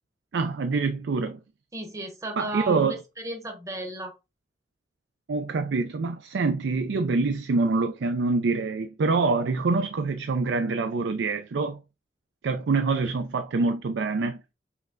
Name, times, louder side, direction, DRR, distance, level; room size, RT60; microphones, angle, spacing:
voice 1, 0.3-1.4 2.4-2.9 5.3-11.8 12.4-14.4, right 4 dB, 90° right, 0.4 m, -25 dB
voice 2, 1.7-4.1, right 1 dB, 20° right, 0.8 m, -35 dB
5.6 x 2.1 x 3.7 m
head